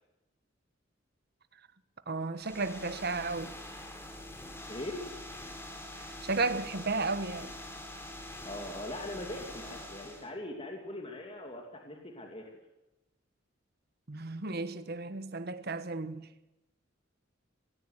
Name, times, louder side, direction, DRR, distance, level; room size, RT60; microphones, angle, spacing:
voice 1, 2.1-3.5 6.0-7.5 14.1-16.3, right 3 dB, 55° right, 1.3 m, -34 dB
sound 1, 2.4-10.3, left 1 dB, 15° left, 3.5 m, -45 dB
voice 2, 4.7-5.1 8.4-12.5, left 1 dB, 30° left, 2.8 m, -41 dB
18.5 x 17.5 x 8.2 m
head